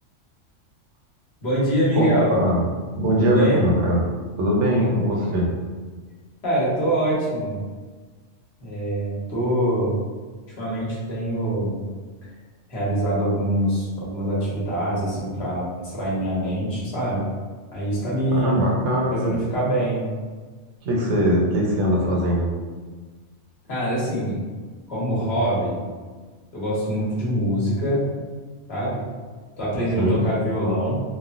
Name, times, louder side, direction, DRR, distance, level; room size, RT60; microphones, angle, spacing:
voice 1, 1.4-2.4 3.1-3.7 6.4-7.7 8.6-10.0 10.6-11.8 12.7-17.3 17.7-18.7 19.1-20.0 23.7-24.4 24.9-25.8 26.5-28.1 28.7-29.0 29.6-31.0, right 1 dB, 60° left, -7 dB, 1.2 m, -24 dB
voice 2, 1.9-2.6 3.0-4.0 4.4-5.5 18.4-19.3 20.8-22.5 29.9-30.2, equal, 75° right, -2 dB, 0.9 m, -21 dB
3.1 x 2.1 x 2.5 m, 1.4 s
omnidirectional pair, 1.3 m